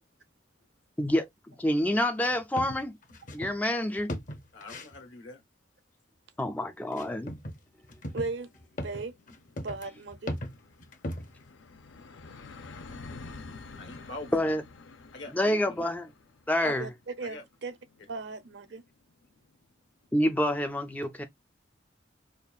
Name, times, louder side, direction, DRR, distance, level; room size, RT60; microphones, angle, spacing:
voice 1, 1.0-3.0 3.3-4.2 6.4-7.4 14.3-14.6 15.3-16.1 16.5-16.9 20.1-21.2, left 1 dB, 10° left, 0.3 m, -27 dB
sound 1, 2.3-3.6 3.9-5.0 6.9-7.6 7.8-11.5, equal, 45° left, 0.7 m, -37 dB
voice 2, 4.5-5.4 13.3-14.4 15.1-15.8 16.6-16.7 17.2-17.4, left 2 dB, 70° left, 1.2 m, -45 dB
sound 2, 7.7-7.8 8.0-19.5, left 3 dB, 90° left, 0.6 m, -49 dB
voice 3, 8.1-8.5 8.8-9.1 9.6-10.3 16.7-16.9 17.2-17.8 18.1-18.8, right 3 dB, 65° right, 0.7 m, -36 dB
5.1 x 2.4 x 2.3 m
head